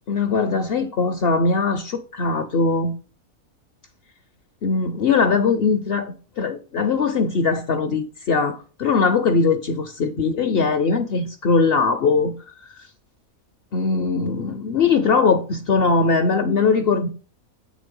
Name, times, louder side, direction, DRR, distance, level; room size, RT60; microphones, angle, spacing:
voice 1, 0.1-2.9 4.6-12.3 12.8-12.9 13.7-17.1, left 4 dB, 60° left, 0.6 m, -20 dB
8.4 x 3.2 x 5.2 m
omnidirectional pair, 1.5 m